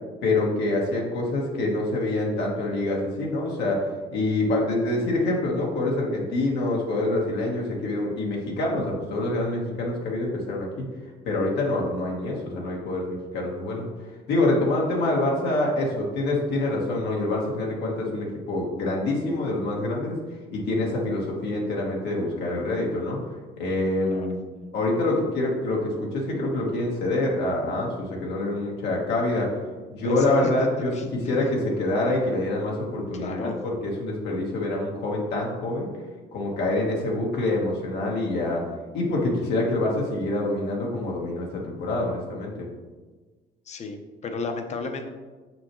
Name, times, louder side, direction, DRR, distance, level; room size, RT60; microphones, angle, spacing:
voice 1, 0.2-10.9 11.2-13.9 14.3-20.2 20.5-23.2 23.6-24.5 24.7-29.5 29.9-35.9 36.3-38.6 38.9-42.7, left 2 dB, 80° left, -2 dB, 1.4 m, -26 dB
voice 2, 29.9-30.2 30.6-30.7 30.9-31.0 31.3-31.4 33.1-33.5 43.7-45.0, left 4 dB, 40° left, 6 dB, 0.8 m, -33 dB
6.0 x 5.7 x 3.1 m, 1.3 s
cardioid pair, 110°, 17 cm